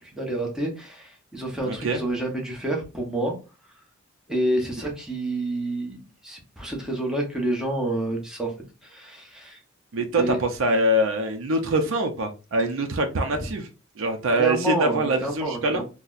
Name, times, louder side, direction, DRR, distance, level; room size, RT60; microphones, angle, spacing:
voice 1, 0.0-3.3 4.3-6.0 6.2-8.5 8.8-9.6 10.2-10.4 13.3-13.5 14.3-15.8, right 1 dB, 5° right, -1 dB, 0.8 m, -28 dB
voice 2, 1.6-2.0 9.9-13.7 14.0-15.8, right 1 dB, 65° right, 5 dB, 0.5 m, -24 dB
4.0 x 2.1 x 2.5 m, 0.31 s
head